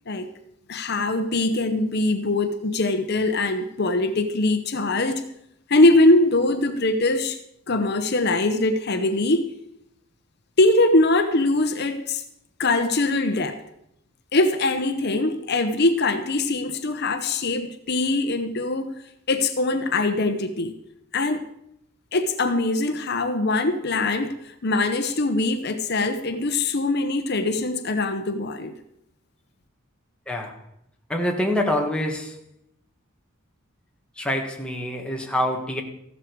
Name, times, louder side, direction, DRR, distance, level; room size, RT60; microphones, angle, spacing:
voice 1, 0.7-5.3 5.7-7.4 7.7-9.5 10.6-12.2 12.6-13.6 14.3-19.0 19.3-20.7 21.1-21.5 22.1-28.7, left 2 dB, 50° left, 8 dB, 0.9 m, -22 dB
voice 2, 31.1-32.4 34.2-35.8, left 1 dB, 5° left, 1 dB, 1.7 m, -25 dB
15.0 x 12.0 x 4.7 m, 0.78 s
head